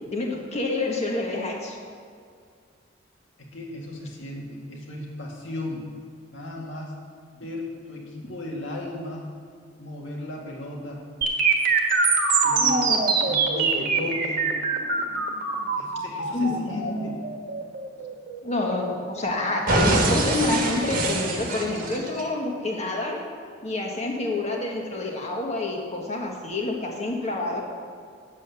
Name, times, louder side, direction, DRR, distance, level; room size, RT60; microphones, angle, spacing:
voice 1, 0.1-1.8 12.5-13.3 16.3-16.8 18.4-23.2 23.6-27.6, left 2 dB, 35° left, 0 dB, 1.6 m, -28 dB
voice 2, 3.4-5.9 6.3-7.0 7.3-9.3 9.8-11.1 12.4-12.8 13.2-14.5 15.8-17.2, left 1 dB, 80° left, -1 dB, 2.0 m, -35 dB
sound 1, 11.2-19.2 19.7-22.2, right 4 dB, 45° right, 1.3 m, -24 dB
8.7 x 7.5 x 7.0 m, 2.2 s
head